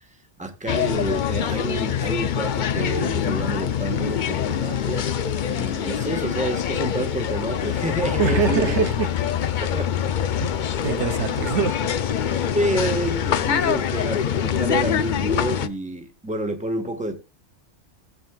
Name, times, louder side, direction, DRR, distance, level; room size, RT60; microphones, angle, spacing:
voice 1, 0.4-5.1 5.5-8.8 9.6-9.9 12.5-17.2, right 1 dB, 5° right, 1.2 m, -28 dB
sound 1, 0.7-15.7, left 9 dB, 55° left, 0.6 m, -24 dB
voice 2, 8.2-9.1 10.4-10.5 10.8-11.9, right 6 dB, 75° right, 1.1 m, -23 dB
17.5 x 7.4 x 2.3 m
omnidirectional pair, 1.2 m